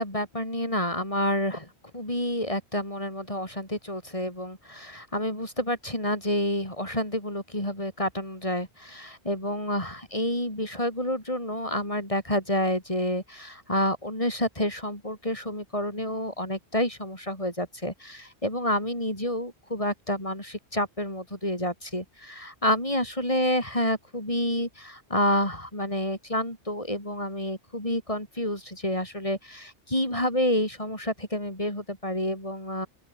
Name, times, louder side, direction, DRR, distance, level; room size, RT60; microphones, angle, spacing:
voice 1, 0.0-32.9, left 1 dB, 30° left, 7.2 m, -29 dB
open air
omnidirectional pair, 1.1 m